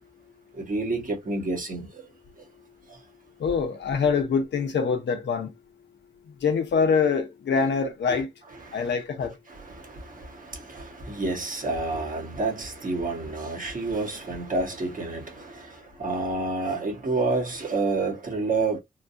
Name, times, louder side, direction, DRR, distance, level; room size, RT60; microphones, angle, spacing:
voice 1, 0.5-1.9 8.1-8.2 8.6-8.9 9.5-18.8, right 3 dB, 50° right, 1.7 m, -29 dB
voice 2, 3.4-5.5 6.4-8.3 8.7-9.3, left 5 dB, 90° left, 0.8 m, -24 dB
3.8 x 2.3 x 2.6 m
cardioid pair, 75°, 18 cm